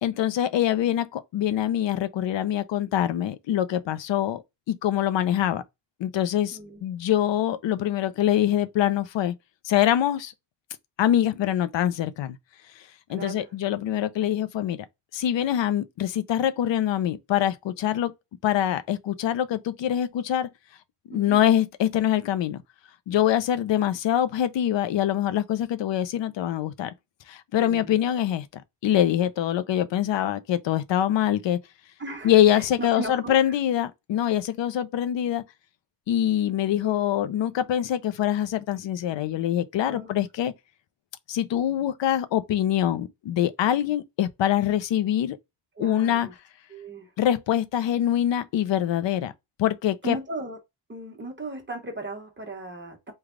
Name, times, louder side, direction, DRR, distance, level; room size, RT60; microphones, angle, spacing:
voice 1, 0.0-4.4 4.7-5.6 6.0-9.3 9.6-10.3 11.0-12.4 13.1-14.8 15.1-18.1 18.4-20.5 21.1-22.6 23.1-26.9 27.3-31.6 32.2-35.4 36.1-40.5 41.3-45.4 45.8-46.3 47.2-49.3 49.6-50.2, left 11 dB, 90° left, 0.6 m, -24 dB
voice 2, 6.5-6.9 13.1-13.5 21.1-21.4 27.5-28.0 32.0-33.3 36.8-37.1 39.8-40.1 45.8-46.3 46.7-47.1 50.0-50.6 50.9-53.1, right 2 dB, 25° right, 1.0 m, -37 dB
3.3 x 2.3 x 3.6 m
wide cardioid pair, 120°, 43 cm